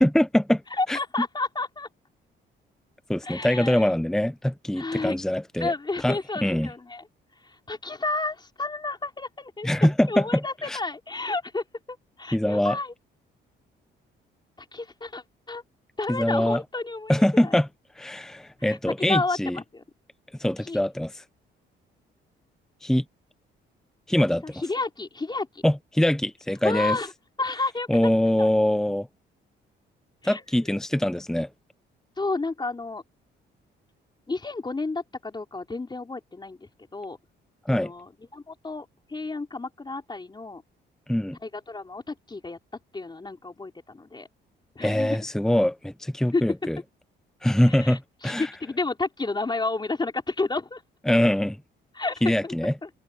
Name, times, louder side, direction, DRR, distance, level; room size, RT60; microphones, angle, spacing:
voice 1, 0.0-0.6 0.9-1.0 3.1-5.7 6.0-6.7 9.6-10.8 12.3-12.8 16.1-16.6 17.1-17.7 18.0-19.6 20.4-21.2 22.8-23.0 24.1-24.6 25.6-27.0 27.9-29.1 30.2-31.5 37.6-37.9 41.1-41.4 44.8-46.8 47.4-48.5 51.1-51.6 52.2-52.7, left 1 dB, ahead, 0.9 m, -23 dB
voice 2, 0.7-1.9 3.2-3.9 4.8-5.2 5.6-7.1 7.4-12.9 14.6-15.6 16.0-17.5 18.6-19.8 20.6-20.8 24.4-25.6 26.6-27.1 27.4-28.1 28.4-28.5 30.2-30.4 32.2-33.0 34.3-37.2 37.7-40.6 41.4-42.6 42.9-44.3 44.8-45.2 46.3-46.4 47.7-50.8 51.9-52.5 52.8-52.9, left 3 dB, 20° left, 3.9 m, -31 dB
open air
cardioid pair, 90°, 20 cm